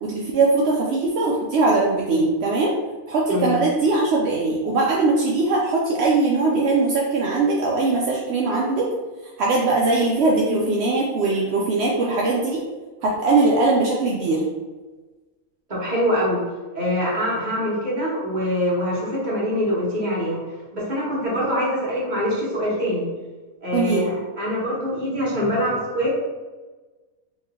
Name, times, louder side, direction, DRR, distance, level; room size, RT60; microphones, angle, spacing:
voice 1, 0.0-2.7 3.1-8.9 9.4-12.6 13.0-14.4 23.7-24.1, right 3 dB, 65° right, -3 dB, 0.6 m, -20 dB
voice 2, 3.3-3.6 15.7-16.4 16.7-20.4 20.7-23.1 23.6-26.1, equal, 35° right, -7 dB, 1.4 m, -24 dB
3.1 x 3.1 x 3.6 m, 1.2 s
omnidirectional pair, 1.5 m